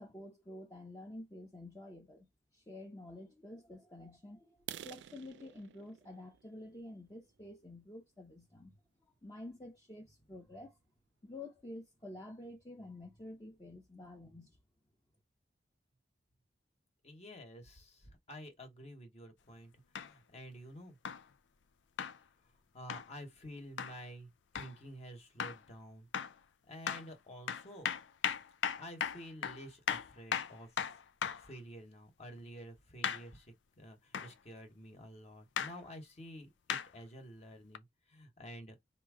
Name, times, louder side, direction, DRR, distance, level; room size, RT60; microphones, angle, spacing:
voice 1, 0.0-2.3 2.5-4.6 4.8-8.8 9.2-10.8 11.2-14.6, left 1 dB, 20° left, 0.8 m, -49 dB
sound 1, 4.6-8.3 8.9-9.1 9.5-9.6 10.0-10.2 10.5-10.6 11.1-11.2 11.4-11.9, right 11 dB, 70° right, 0.3 m, -51 dB
voice 2, 17.0-19.7 20.0-21.0 22.7-26.1 26.7-27.9 28.8-30.9 31.4-38.8, equal, 35° left, 1.1 m, -50 dB
sound 2, 19.9-20.1 21.0-21.2 22.0-22.2 22.9-23.1 23.8-24.0 24.5-24.7 25.4-25.6 26.1-26.4 26.9-27.1 27.5-31.5 33.0-33.3 34.1-34.3 35.6-35.7 36.7-36.9 37.7-37.8, left 8 dB, 85° left, 0.5 m, -37 dB
3.6 x 3.0 x 4.8 m
head